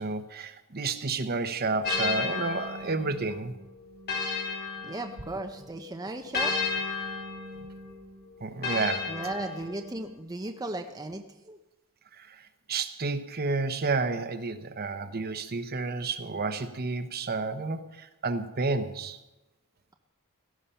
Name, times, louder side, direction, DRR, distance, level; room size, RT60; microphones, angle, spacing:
voice 1, 0.0-3.5 8.4-9.1 12.2-12.4 12.7-19.2, right 3 dB, 45° right, 9 dB, 1.0 m, -31 dB
sound 1, 1.8-5.6 6.3-10.0, left 4 dB, 45° left, 3.2 m, -33 dB
voice 2, 4.8-6.7 9.1-11.6, right 2 dB, 15° right, 4 dB, 0.7 m, -36 dB
17.5 x 13.0 x 5.7 m, 1.0 s
head